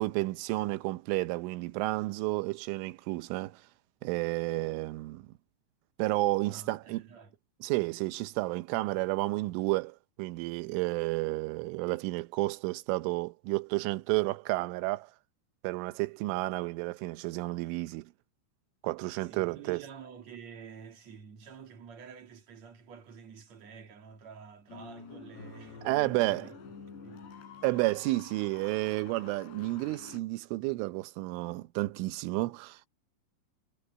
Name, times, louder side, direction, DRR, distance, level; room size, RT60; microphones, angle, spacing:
voice 1, 0.0-3.6 4.0-5.3 6.0-7.0 7.6-15.1 15.6-18.1 18.8-19.8 25.8-26.5 27.6-32.9, right 21 dB, 90° right, 3.3 m, -31 dB
voice 2, 6.5-7.4 19.2-25.9 26.2-26.6 27.0-27.3, right 6 dB, 45° right, 2.5 m, -49 dB
sound 1, 24.7-30.2, left 5 dB, 65° left, 6.7 m, -48 dB
omnidirectional pair, 5.5 m